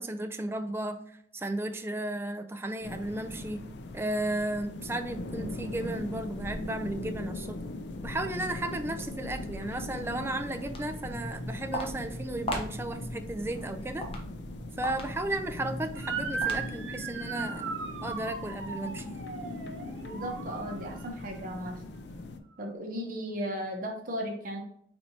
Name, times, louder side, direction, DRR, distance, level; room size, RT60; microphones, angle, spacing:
voice 1, 0.0-3.6 3.9-7.6 8.0-14.1 14.8-17.8 18.0-19.2, right 1 dB, 15° right, 8 dB, 0.3 m, -34 dB
sound 1, 2.8-22.4, left 2 dB, 70° left, 0.5 m, -40 dB
Walk footsteps, 10.5-17.0, equal, 35° left, 0.8 m, -39 dB
Motor vehicle (road) / Siren, 15.9-21.2, right 5 dB, 80° right, 0.8 m, -37 dB
voice 2, 20.0-21.8 22.6-24.6, equal, 50° right, 1 dB, 0.9 m, -36 dB
4.3 x 4.3 x 2.7 m, 0.67 s
head